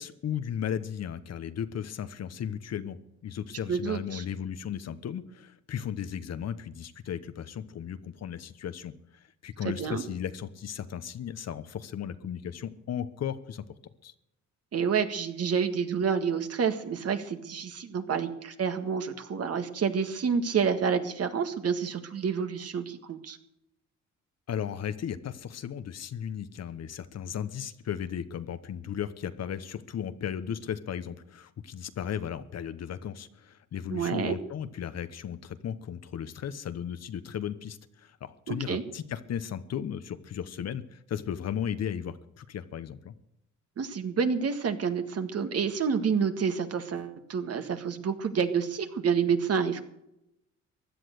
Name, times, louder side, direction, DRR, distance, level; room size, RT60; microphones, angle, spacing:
voice 1, 0.0-13.6 14.0-14.1 24.5-43.1, left 9 dB, 55° left, 12 dB, 1.1 m, -35 dB
voice 2, 3.7-4.2 9.6-10.0 14.7-23.4 33.9-34.4 38.5-38.8 43.8-49.8, right 6 dB, 55° right, 8 dB, 1.8 m, -28 dB
16.0 x 10.5 x 6.6 m, 0.84 s
cardioid pair, 90°, 30 cm